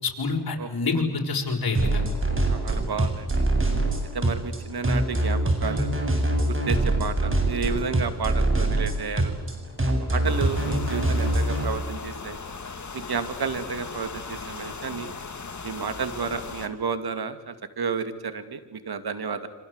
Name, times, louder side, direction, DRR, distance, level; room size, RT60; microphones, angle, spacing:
voice 1, 0.0-2.0, left 4 dB, 60° left, 1 dB, 5.9 m, -27 dB
sound 1, 1.7-11.6, right 1 dB, 30° right, 7.6 m, -24 dB
voice 2, 2.5-3.4 4.1-5.9 6.5-9.3 10.1-12.4 12.9-15.1 15.6-19.5, right 5 dB, 65° right, 10 dB, 2.5 m, -31 dB
sound 2, 10.2-16.7, left 4 dB, 45° left, 2.9 m, -38 dB
28.0 x 26.0 x 8.2 m, 1.2 s
cardioid pair, 65°, 40 cm